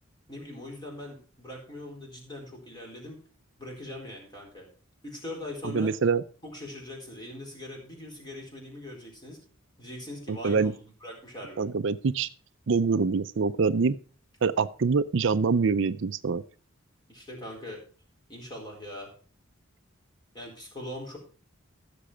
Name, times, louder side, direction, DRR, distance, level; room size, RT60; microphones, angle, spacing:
voice 1, 0.3-3.2 3.6-4.7 5.0-5.9 6.4-9.4 9.8-10.7 11.0-11.6 17.1-17.8 18.3-19.1 20.3-21.2, left 1 dB, 20° left, 0 dB, 4.2 m, -41 dB
voice 2, 5.7-6.2 10.3-10.7 11.6-12.3 12.7-13.9 14.4-16.4, right 5 dB, 60° right, 13 dB, 0.5 m, -25 dB
15.0 x 6.9 x 4.9 m, 0.40 s
head